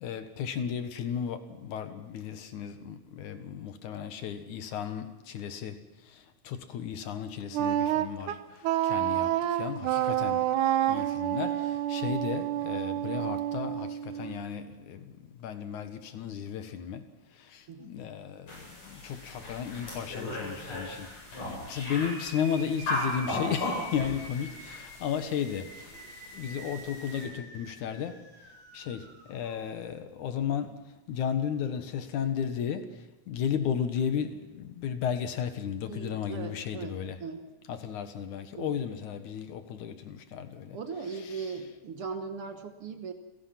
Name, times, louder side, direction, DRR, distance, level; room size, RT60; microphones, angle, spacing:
voice 1, 0.0-5.7 6.5-8.4 8.8-9.3 9.6-10.4 10.9-11.6 11.9-13.9 14.2-15.0 15.4-17.0 17.8-18.5 18.9-21.1 21.7-25.7 26.3-28.2 28.7-29.0 29.3-30.8 31.1-32.9 33.3-37.2 37.7-40.8 41.2-41.5, left 8 dB, 80° left, 8 dB, 2.8 m, -34 dB
Wind instrument woodwind instrument, 7.5-14.5, right 12 dB, 90° right, 2.4 m, -29 dB
sound 1, 18.5-27.2, left 1 dB, 60° left, 9.3 m, -37 dB
sound 2, 21.7-29.6, right 1 dB, 10° right, 4.5 m, -47 dB
voice 2, 35.9-37.5 38.6-38.8 40.7-43.1, right 5 dB, 55° right, 7 dB, 1.9 m, -39 dB
29.0 x 17.0 x 6.0 m, 1.1 s
omnidirectional pair, 3.4 m